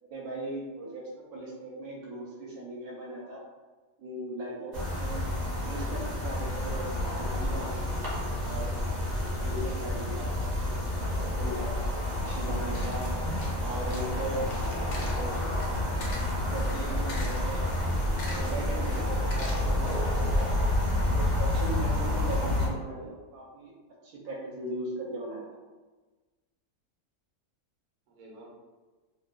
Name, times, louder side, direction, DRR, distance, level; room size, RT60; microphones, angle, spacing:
voice 1, 0.0-3.4 4.0-5.2 5.6-8.0 8.4-8.8 9.4-13.1 13.6-14.5 15.1-15.4 16.4-20.5 21.1-23.7 24.0-25.5, right 2 dB, 80° right, -3 dB, 1.1 m, -39 dB
sound 1, 4.7-22.7, left 1 dB, 45° right, 0.6 m, -29 dB
voice 2, 9.8-10.6 22.6-23.2 28.1-28.5, right 1 dB, 65° right, -3 dB, 0.9 m, -50 dB
sound 2, 12.1-20.0, left 2 dB, 85° left, 1.1 m, -43 dB
2.8 x 2.1 x 2.3 m, 1.3 s
omnidirectional pair, 1.6 m